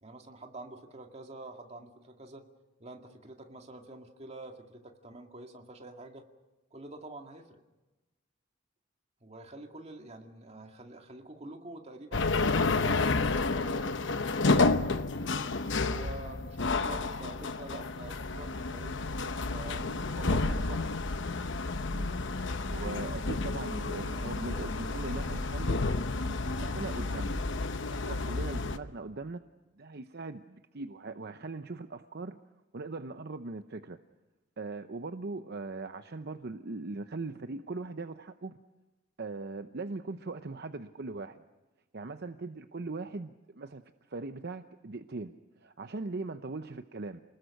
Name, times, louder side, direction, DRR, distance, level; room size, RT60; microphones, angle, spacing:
voice 1, 0.0-2.5 2.8-6.2 6.7-7.6 9.2-14.7 15.8-19.0 19.5-20.9 42.1-42.2, right 2 dB, 35° right, 3 dB, 2.2 m, -47 dB
sound 1, 12.1-28.8, left 3 dB, 65° left, 1.0 m, -30 dB
voice 2, 22.7-25.8 26.2-27.4 27.9-29.4 29.8-32.4 32.7-34.0 34.6-38.6 39.2-41.4 41.9-43.8 44.1-45.3 45.6-47.2, right 3 dB, 55° right, 9 dB, 0.7 m, -40 dB
28.5 x 20.0 x 6.6 m, 1.1 s
head